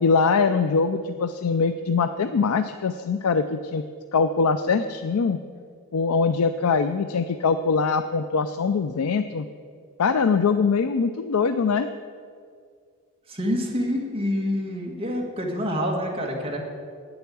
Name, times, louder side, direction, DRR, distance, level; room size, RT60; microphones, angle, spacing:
voice 1, 0.0-3.8 4.1-5.4 5.9-9.5 10.0-11.9, left 5 dB, 75° left, 10 dB, 0.4 m, -22 dB
voice 2, 13.3-16.6, equal, 25° right, 0 dB, 1.8 m, -27 dB
9.2 x 7.9 x 8.4 m, 2.1 s
head